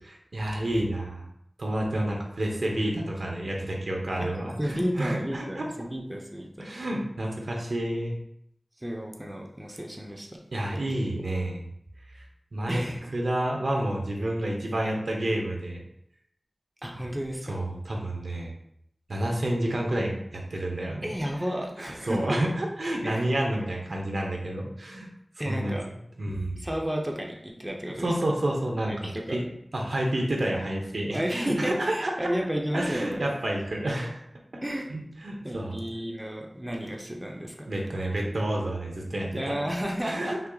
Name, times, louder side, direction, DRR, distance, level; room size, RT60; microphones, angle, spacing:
voice 1, 0.3-1.3 1.6-5.7 6.6-8.1 10.5-11.7 12.1-12.2 12.5-12.8 13.1-15.8 17.5-18.5 19.1-21.1 21.8-25.1 25.4-26.6 28.0-29.5 29.7-32.3 32.7-34.2 34.9-35.8 37.7-39.7 40.0-40.5, right 1 dB, 75° right, 0 dB, 0.9 m, -29 dB
voice 2, 4.3-6.5 8.8-10.3 12.7-13.1 16.8-17.6 21.0-22.4 23.0-23.3 25.4-25.8 26.6-28.1 28.9-29.4 31.1-33.2 34.6-34.9 35.4-37.5 39.3-40.4, equal, 15° right, 0 dB, 0.7 m, -32 dB
5.8 x 2.1 x 3.8 m, 0.74 s
wide cardioid pair, 70°, 0 cm